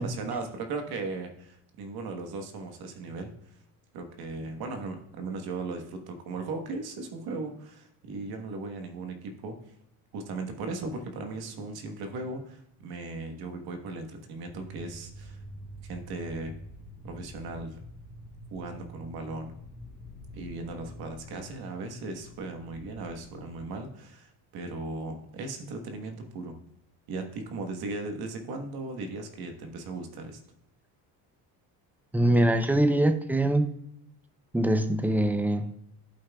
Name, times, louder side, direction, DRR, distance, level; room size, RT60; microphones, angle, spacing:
voice 1, 0.0-3.3 3.9-9.5 10.1-15.4 15.8-16.5 17.0-17.8 18.5-19.5 20.3-26.6 27.1-30.4, right 3 dB, 70° right, 5 dB, 1.4 m, -37 dB
sound 1, 14.4-23.8, equal, 30° left, 1.5 m, -46 dB
voice 2, 32.1-33.7 34.5-35.7, right 1 dB, 5° right, 9 dB, 0.5 m, -23 dB
12.0 x 5.5 x 2.3 m, 0.76 s
cardioid pair, 120°, 40 cm